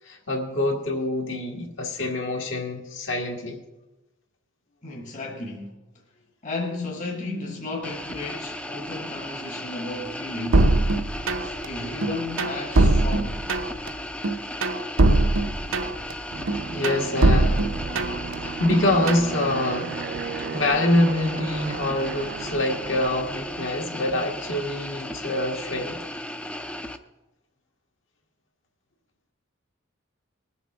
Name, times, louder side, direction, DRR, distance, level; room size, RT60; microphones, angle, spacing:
voice 1, 0.0-3.6 11.2-12.0 16.7-17.6 18.4-20.0 20.4-26.0, left 1 dB, 60° left, 1.8 m, -26 dB
voice 2, 4.8-5.8 6.4-10.8 11.6-13.5, left 2 dB, 40° left, 1.5 m, -34 dB
sound 1, 7.8-27.0, left 1 dB, 5° left, 0.5 m, -36 dB
sound 2, 10.5-11.7 12.0-13.9 14.2-16.1 16.5-18.3 18.7-19.3, right 2 dB, 75° right, 0.7 m, -21 dB
Aircraft, 16.3-23.6, right 5 dB, 50° right, 0.3 m, -35 dB
20.0 x 7.1 x 4.9 m
head